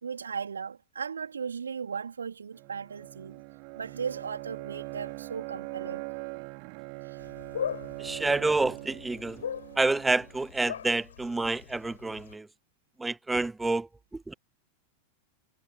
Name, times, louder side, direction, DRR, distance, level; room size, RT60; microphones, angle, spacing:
voice 1, 0.0-3.4 3.7-6.1 7.1-7.2, right 6 dB, 70° right, 3.6 m, -37 dB
Bowed string instrument, 2.5-10.3, right 40 dB or more, 45° right, 4.7 m, -41 dB
sound 1, 7.2-12.3, left 8 dB, 65° left, 7.7 m, -40 dB
voice 2, 8.0-9.4 9.8-12.5 13.0-14.3, right 2 dB, 10° right, 0.5 m, -28 dB
figure-of-eight pair, 90°, 0 cm